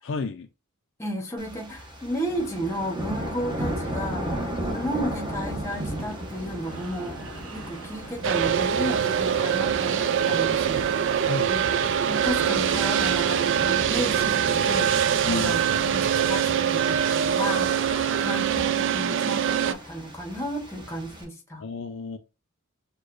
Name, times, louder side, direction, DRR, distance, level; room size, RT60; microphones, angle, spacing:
voice 1, 0.0-0.5 11.2-11.6 15.3-15.9 21.6-22.2, left 4 dB, 55° left, 0.4 m, -32 dB
voice 2, 1.0-10.9 11.5-11.6 12.1-17.7 18.2-21.6, equal, 10° left, 0.9 m, -33 dB
sound 1, 1.4-21.2, right 1 dB, 20° right, 0.9 m, -36 dB
sound 2, 5.7-19.9, right 4 dB, 85° right, 0.6 m, -44 dB
sound 3, 8.2-19.7, right 8 dB, 55° right, 0.3 m, -23 dB
6.4 x 2.2 x 2.5 m
head